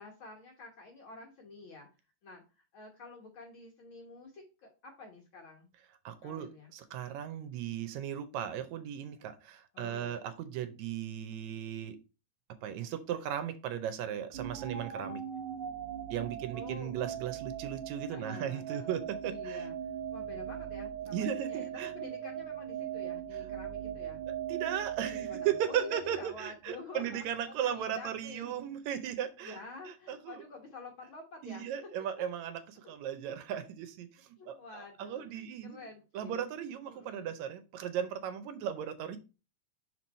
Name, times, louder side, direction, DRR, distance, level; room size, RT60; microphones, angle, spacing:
voice 1, 0.0-1.9 2.2-5.7 6.2-6.7 9.7-10.2 16.5-16.9 18.1-19.0 19.2-24.2 25.1-27.3 27.6-28.6 29.4-31.7 34.4-36.4 36.9-37.3, left 3 dB, 55° left, 1 dB, 1.6 m, -48 dB
voice 2, 6.1-12.0 12.6-15.2 16.1-19.7 21.1-21.9 24.3-29.6 29.9-30.4 31.4-35.8 36.1-39.2, right 9 dB, 75° right, 10 dB, 1.9 m, -36 dB
sound 1, 14.3-26.4, right 9 dB, 60° right, 1.6 m, -40 dB
5.7 x 4.6 x 4.1 m, 0.31 s
omnidirectional pair, 3.4 m